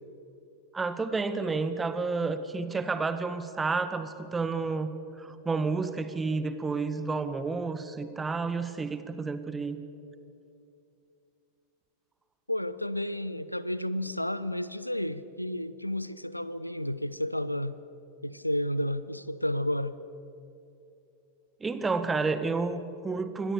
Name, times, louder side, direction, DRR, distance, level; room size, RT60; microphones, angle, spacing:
voice 1, 0.7-9.8 21.6-23.5, right 4 dB, 15° right, 11 dB, 1.7 m, -30 dB
voice 2, 12.5-17.8 18.2-20.0, left 1 dB, 90° left, 16 dB, 0.8 m, -31 dB
27.5 x 23.0 x 7.0 m, 2.7 s
figure-of-eight pair, 90°, 0 cm